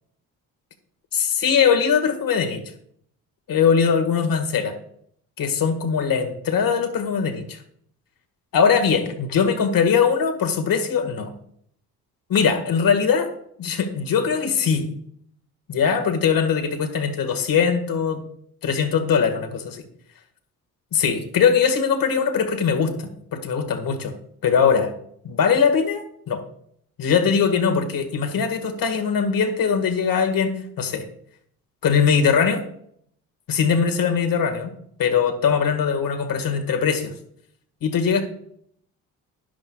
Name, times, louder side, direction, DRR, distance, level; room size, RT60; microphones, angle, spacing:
voice 1, 1.1-2.6 3.5-4.8 5.4-7.6 8.5-11.3 12.3-13.3 13.6-14.9 15.7-18.2 18.6-19.8 20.9-24.1 24.4-24.9 25.2-26.4 27.0-30.5 30.8-31.0 31.8-32.6 33.5-34.7 35.0-37.1 37.8-38.2, left 6 dB, 65° left, 6 dB, 1.8 m, -21 dB
13.0 x 10.5 x 2.4 m, 0.69 s
cardioid pair, 80°, 36 cm